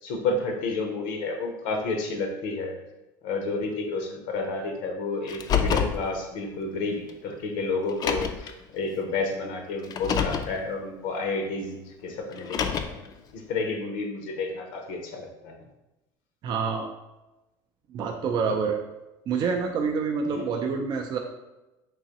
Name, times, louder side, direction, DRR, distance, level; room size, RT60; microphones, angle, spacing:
voice 1, 0.0-2.7 3.2-15.5 20.3-20.5, left 3 dB, 75° left, 3 dB, 0.6 m, -31 dB
Car, 5.3-6.0 7.1-7.2 7.9-8.5 9.8-10.5 12.3-13.1, left 7 dB, 40° left, 0.3 m, -26 dB
voice 2, 16.4-16.9 17.9-18.8 19.3-21.2, right 5 dB, 40° right, 3 dB, 0.4 m, -27 dB
3.7 x 2.9 x 2.9 m, 1.0 s
supercardioid pair, 105°, 11 cm